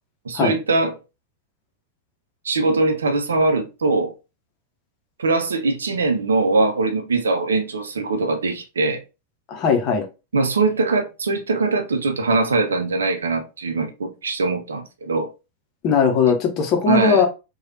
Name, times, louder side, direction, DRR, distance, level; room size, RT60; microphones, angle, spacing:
voice 1, 0.3-0.9 2.4-4.1 5.2-9.0 10.3-15.3 16.9-17.2, right 3 dB, 70° right, 0.5 m, -21 dB
voice 2, 9.5-10.1 15.8-17.3, left 5 dB, 35° left, 0.7 m, -18 dB
3.2 x 2.3 x 2.6 m
figure-of-eight pair, 90°, 0 cm